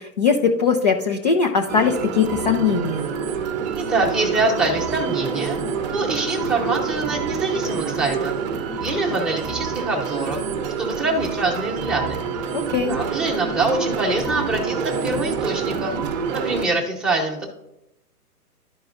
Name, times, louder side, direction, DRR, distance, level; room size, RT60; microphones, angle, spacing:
voice 1, 0.0-3.1 12.5-13.0, left 5 dB, 30° left, 4 dB, 0.4 m, -20 dB
sound 1, 1.7-16.7, right 6 dB, 30° right, 0.8 m, -27 dB
voice 2, 3.7-5.6 5.9-8.4 8.8-10.5 10.8-12.2 12.9-16.0 16.3-17.5, right 2 dB, ahead, -3 dB, 1.0 m, -24 dB
12.0 x 4.6 x 2.6 m, 0.85 s
hypercardioid pair, 135°, 46 cm